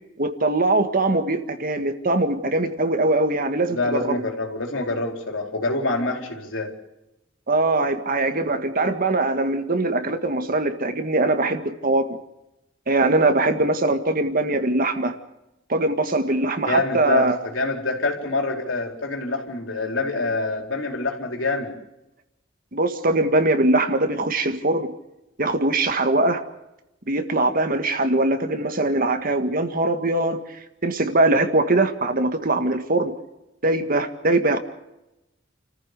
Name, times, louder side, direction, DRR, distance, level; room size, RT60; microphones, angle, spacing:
voice 1, 0.2-4.2 7.5-12.2 12.9-15.1 15.7-17.4 22.7-25.0 25.4-26.4 27.1-33.1 33.6-34.6, right 2 dB, 45° right, 1.8 m, -22 dB
voice 2, 3.7-6.7 16.7-21.7, left 2 dB, 70° left, 4.4 m, -26 dB
30.0 x 15.0 x 6.8 m
head